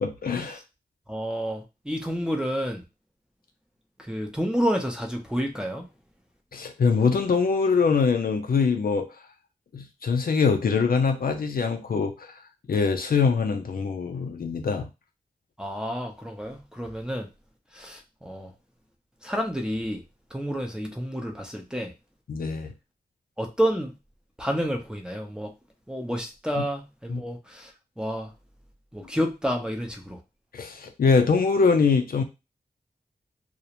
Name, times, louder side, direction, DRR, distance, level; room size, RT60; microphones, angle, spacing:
voice 1, 0.0-0.6 6.5-9.1 9.7-12.3 12.7-14.9 22.3-22.7 27.1-27.2 30.5-32.2, left 5 dB, 65° left, 5 dB, 0.4 m, -23 dB
voice 2, 1.1-2.8 4.1-5.9 15.6-17.3 17.7-18.5 19.2-20.0 20.3-21.9 23.4-23.9 24.4-25.5 25.9-27.7 28.0-28.3 28.9-30.2, equal, 5° right, 1 dB, 0.6 m, -29 dB
2.4 x 2.0 x 2.9 m, 0.26 s
wide cardioid pair, 65°, 16 cm